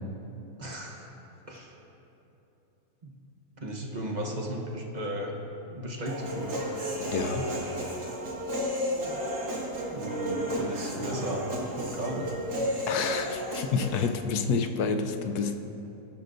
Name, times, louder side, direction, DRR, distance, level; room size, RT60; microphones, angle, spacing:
voice 1, 0.6-1.1 1.5-1.8 3.0-3.1 3.6-5.4 5.7-6.6 9.6-12.3, right 1 dB, 30° right, 0 dB, 1.1 m, -35 dB
Human voice, 6.1-14.1, equal, 85° right, 2.6 m, -32 dB
voice 2, 7.1-7.5 12.9-15.6, left 5 dB, 85° left, 6 dB, 1.2 m, -29 dB
20.0 x 10.0 x 2.6 m, 3.0 s
omnidirectional pair, 1.6 m